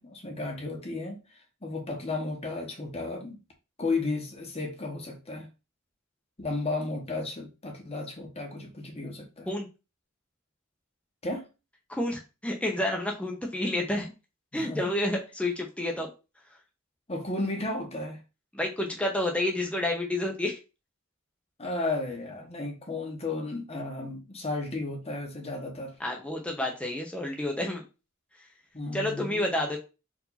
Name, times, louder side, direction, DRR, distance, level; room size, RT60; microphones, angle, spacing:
voice 1, 0.0-3.4 3.8-5.5 6.4-9.5 11.2-11.5 14.5-15.0 17.1-18.2 21.6-26.0 28.7-29.5, left 2 dB, 30° left, 1.1 m, -34 dB
voice 2, 11.9-14.1 14.5-16.1 18.5-20.6 26.0-27.8 28.9-29.8, left 1 dB, 5° left, 0.8 m, -29 dB
4.7 x 2.6 x 4.0 m
head